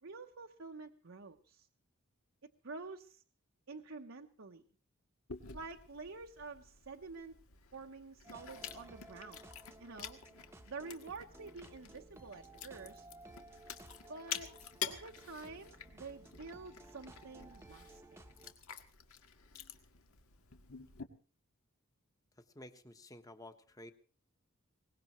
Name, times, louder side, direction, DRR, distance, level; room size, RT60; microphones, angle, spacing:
voice 1, 0.0-1.7 2.6-3.2 3.7-4.6 5.5-7.4 7.7-9.4 9.8-10.2 10.7-13.1 14.1-14.5 14.9-18.0, right 4 dB, 60° right, 3 dB, 0.9 m, -48 dB
Chewing mastication, 5.3-21.0, left 7 dB, 75° left, 1.7 m, -49 dB
sound 1, 8.2-18.5, right 2 dB, 10° right, 1.0 m, -57 dB
voice 2, 22.5-23.9, left 1 dB, 15° left, 8 dB, 1.2 m, -52 dB
22.5 x 19.5 x 3.1 m, 0.39 s
head